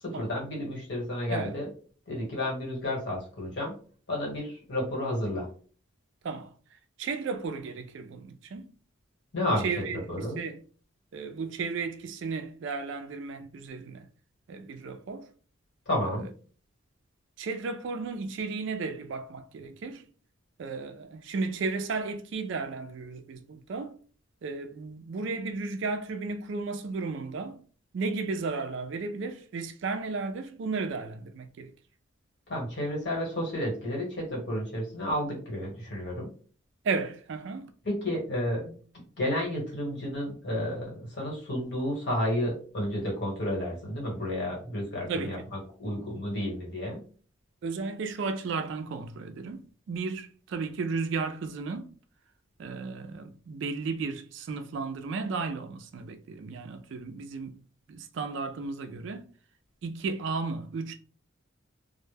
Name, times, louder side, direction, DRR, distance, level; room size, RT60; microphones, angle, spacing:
voice 1, 0.0-1.6 2.1-3.7 4.1-5.5 9.3-9.7 10.1-10.4 15.9-16.3 32.5-36.3 37.8-38.8 39.2-45.4 45.8-47.0, left 1 dB, 55° left, 1.2 m, -31 dB
voice 2, 7.0-8.7 9.6-10.6 11.1-14.1 14.5-15.3 16.0-16.3 17.4-20.0 20.6-24.0 24.4-27.6 27.9-31.7 36.8-37.7 45.1-45.5 47.6-51.9 52.6-57.6 57.9-59.3 59.8-60.9, right 4 dB, 65° right, 0.3 m, -34 dB
2.1 x 2.1 x 3.2 m
head